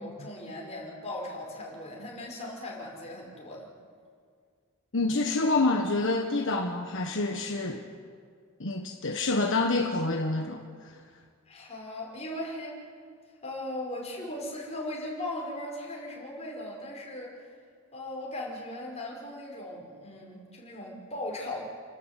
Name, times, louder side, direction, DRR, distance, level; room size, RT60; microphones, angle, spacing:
voice 1, 0.0-3.7 11.5-12.7 13.4-17.3 17.9-21.6, left 1 dB, 30° left, -3 dB, 5.6 m, -38 dB
voice 2, 4.9-7.8 8.6-10.6, left 2 dB, 60° left, 3 dB, 1.3 m, -27 dB
30.0 x 12.5 x 8.3 m, 2.1 s
head